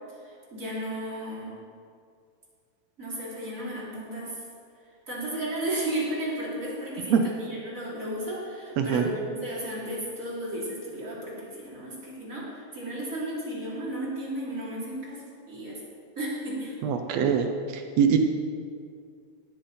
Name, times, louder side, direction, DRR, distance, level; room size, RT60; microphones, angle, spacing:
voice 1, 0.2-1.5 3.0-4.4 5.1-15.8 16.1-16.8, right 1 dB, 25° right, -7 dB, 3.4 m, -34 dB
voice 2, 16.8-17.5 18.0-18.2, right 8 dB, 80° right, 5 dB, 1.5 m, -22 dB
17.0 x 9.6 x 4.3 m, 2.2 s
omnidirectional pair, 4.2 m